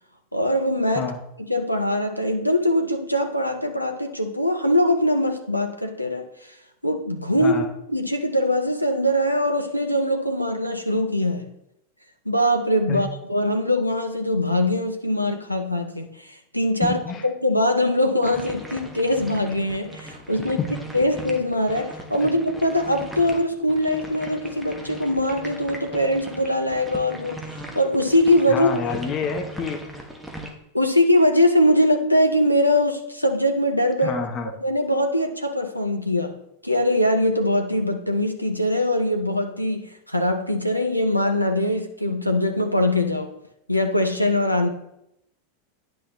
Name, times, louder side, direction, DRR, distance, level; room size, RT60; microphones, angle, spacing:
voice 1, 0.3-1.1 1.5-6.6 6.8-7.6 7.9-11.5 12.3-17.0 17.2-20.6 20.9-27.4 27.7-29.0 30.7-34.2 34.6-36.4 36.6-43.3 43.7-44.7, left 1 dB, 90° left, 0.6 m, -22 dB
voice 2, 16.8-17.3 20.6-20.7 22.2-22.3 28.5-29.8 34.0-34.5, left 5 dB, 30° left, 1.0 m, -28 dB
sound 1, 18.2-30.5, right 1 dB, 5° right, 1.4 m, -39 dB
10.0 x 6.2 x 3.2 m
figure-of-eight pair, 90°, 0 cm